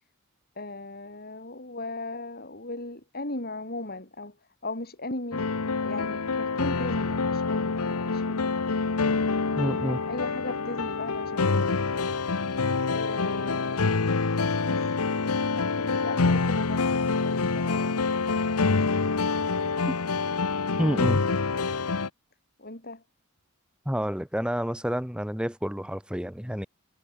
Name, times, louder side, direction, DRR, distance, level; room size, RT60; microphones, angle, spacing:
voice 1, 0.6-4.3 4.6-5.4 5.8-8.7 9.8-11.7 12.9-14.0 14.7-14.9 15.2-19.4 22.6-23.0, left 2 dB, 45° left, 5.4 m, -38 dB
sound 1, 5.3-22.1, left 4 dB, 90° left, 1.0 m, -26 dB
voice 2, 9.5-10.0 20.8-21.2 23.8-26.7, equal, 5° right, 3.2 m, -29 dB
head